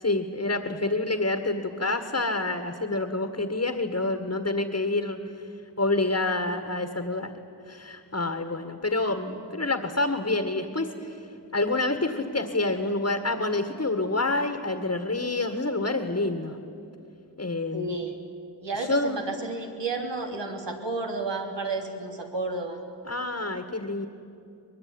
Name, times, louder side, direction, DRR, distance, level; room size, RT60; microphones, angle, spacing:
voice 1, 0.0-5.2 5.8-11.2 11.5-16.6 17.4-17.9 18.8-19.2 23.1-24.1, left 2 dB, 35° left, 7 dB, 1.8 m, -28 dB
voice 2, 17.7-18.2 18.6-22.8, right 3 dB, 85° right, 2 dB, 3.4 m, -31 dB
23.5 x 21.5 x 9.8 m, 2.5 s
wide cardioid pair, 80°, 42 cm